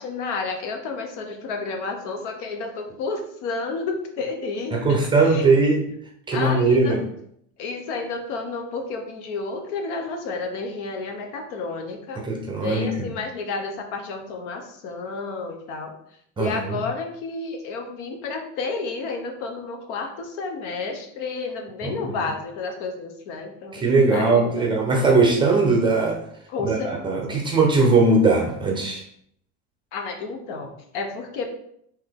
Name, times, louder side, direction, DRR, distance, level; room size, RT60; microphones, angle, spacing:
voice 1, 0.0-5.0 5.2-5.5 6.3-7.0 7.6-12.3 12.6-15.9 16.4-23.8 24.1-24.7 26.5-27.4 29.9-31.5, left 4 dB, 80° left, 4 dB, 0.9 m, -31 dB
voice 2, 4.7-5.8 6.3-7.0 12.2-13.1 16.4-16.8 21.8-22.0 23.7-26.2 26.6-29.0, right 3 dB, 15° right, 0 dB, 0.5 m, -20 dB
3.8 x 2.9 x 3.4 m, 0.69 s
cardioid pair, 155°, 36 cm